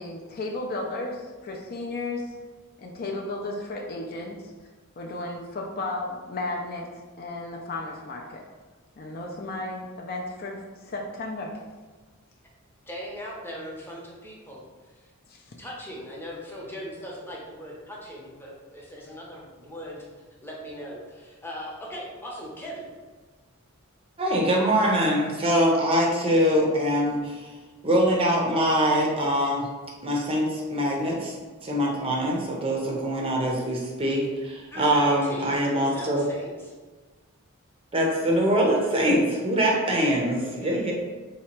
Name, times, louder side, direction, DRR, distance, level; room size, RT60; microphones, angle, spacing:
voice 1, 0.0-2.4 2.8-4.5 5.0-6.9 7.2-8.4 9.0-11.6 15.3-15.6, left 2 dB, 45° left, 0 dB, 0.5 m, -34 dB
voice 2, 12.9-14.6 15.0-15.1 15.6-20.1 20.4-22.9 34.7-36.7 40.3-40.8, equal, 10° left, -3 dB, 0.7 m, -39 dB
voice 3, 24.2-27.5 27.8-29.7 30.0-31.4 31.6-36.2 37.9-40.9, equal, 25° right, -1 dB, 0.6 m, -23 dB
3.3 x 2.9 x 4.4 m, 1.3 s
head